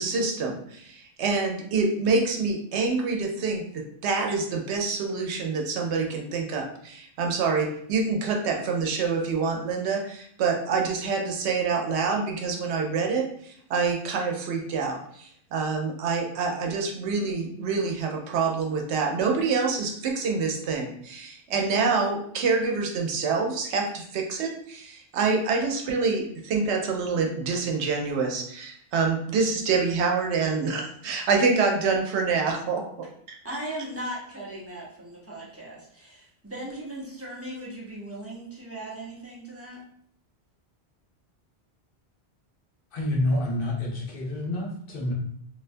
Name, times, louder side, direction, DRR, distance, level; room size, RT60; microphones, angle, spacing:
voice 1, 0.0-33.4, right 4 dB, 85° right, 2 dB, 0.8 m, -26 dB
voice 2, 33.4-39.8, right 1 dB, 20° right, -6 dB, 0.5 m, -38 dB
voice 3, 42.9-45.1, left 1 dB, 60° left, -2 dB, 0.8 m, -28 dB
2.4 x 2.2 x 2.5 m, 0.65 s
omnidirectional pair, 1.1 m